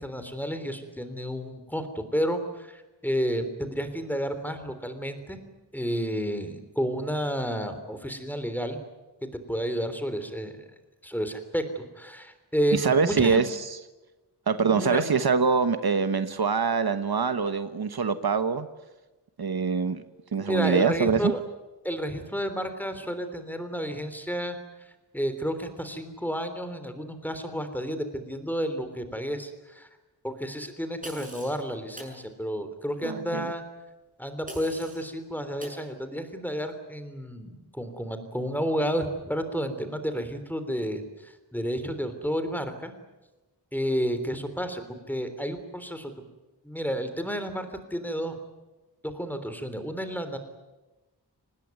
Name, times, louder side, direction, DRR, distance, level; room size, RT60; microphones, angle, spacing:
voice 1, 0.0-5.4 5.7-8.8 9.5-10.6 11.0-13.4 14.6-15.1 20.5-21.4 21.8-24.6 25.1-29.9 30.2-33.6 34.2-42.9 43.7-44.8 45.1-46.1 46.6-48.4 49.0-50.4, equal, 5° left, 9 dB, 3.4 m, -31 dB
voice 2, 12.7-13.7 14.5-18.7 19.4-20.0 20.3-21.3 33.0-33.5, right 5 dB, 65° right, 10 dB, 1.2 m, -24 dB
sound 1, 31.0-31.6 32.0-32.2 34.5-35.1 35.6-35.8, right 1 dB, 20° right, 6.9 m, -42 dB
26.0 x 19.5 x 9.5 m, 1.1 s
wide cardioid pair, 105°, 41 cm